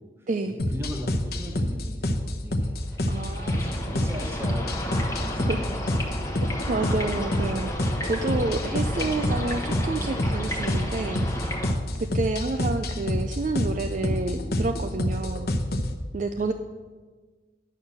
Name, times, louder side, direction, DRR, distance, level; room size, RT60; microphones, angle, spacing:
voice 1, 0.0-3.1 3.4-4.9 5.2-5.8 11.9-12.2 16.4-16.5, left 1 dB, 15° right, 1 dB, 1.3 m, -39 dB
sound 1, 0.6-16.0, left 1 dB, 55° left, 0.8 m, -28 dB
sound 2, 2.7-11.7, equal, 15° left, 1.0 m, -33 dB
voice 2, 3.1-3.6 5.5-5.6 6.4-11.5 12.0-15.5 16.1-16.5, right 3 dB, 45° right, 6 dB, 0.4 m, -29 dB
9.5 x 6.3 x 6.6 m, 1.4 s
head